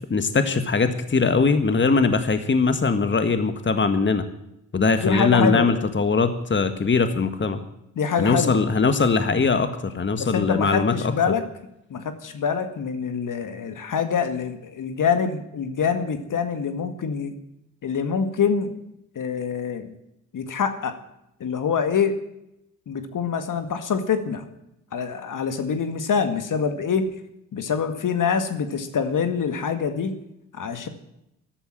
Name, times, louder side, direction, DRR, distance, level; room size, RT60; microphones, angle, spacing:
voice 1, 0.0-4.2 4.7-7.6 8.2-10.9, left 4 dB, 30° left, 10 dB, 1.8 m, -21 dB
voice 2, 5.0-5.7 8.0-8.7 10.2-11.4 11.9-17.3 17.8-18.7 19.2-19.9 20.3-21.0 21.4-22.2 22.9-24.5 24.9-27.1 27.5-30.2 30.5-30.9, left 6 dB, 50° left, 9 dB, 2.0 m, -25 dB
13.5 x 12.0 x 8.9 m, 0.82 s
hypercardioid pair, 45°, 40 cm